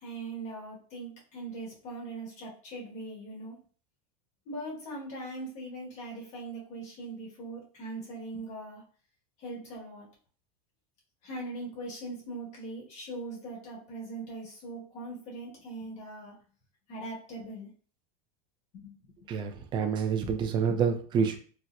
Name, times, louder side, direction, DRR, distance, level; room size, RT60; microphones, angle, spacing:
voice 1, 0.0-3.6 4.4-8.8 9.4-10.1 11.2-16.3 16.9-17.7 18.7-19.1, right 2 dB, 35° left, -3 dB, 1.4 m, -40 dB
voice 2, 19.3-21.4, right 6 dB, 25° right, 6 dB, 0.4 m, -28 dB
4.2 x 2.1 x 2.4 m, 0.41 s
supercardioid pair, 150°, 19 cm